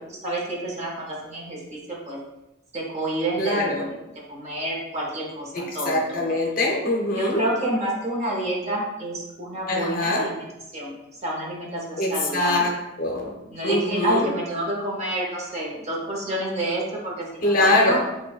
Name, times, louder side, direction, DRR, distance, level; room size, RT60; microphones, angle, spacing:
voice 1, 0.2-2.2 2.7-3.9 4.3-6.3 7.1-10.5 10.7-11.0 11.2-12.7 13.5-18.0, right 1 dB, 35° right, -2 dB, 0.7 m, -29 dB
voice 2, 3.4-3.9 5.5-7.4 9.7-10.3 12.0-12.7 13.0-13.3 13.6-14.3 17.4-18.0, left 1 dB, 45° left, 0 dB, 0.6 m, -23 dB
5.8 x 2.2 x 2.3 m, 0.96 s
head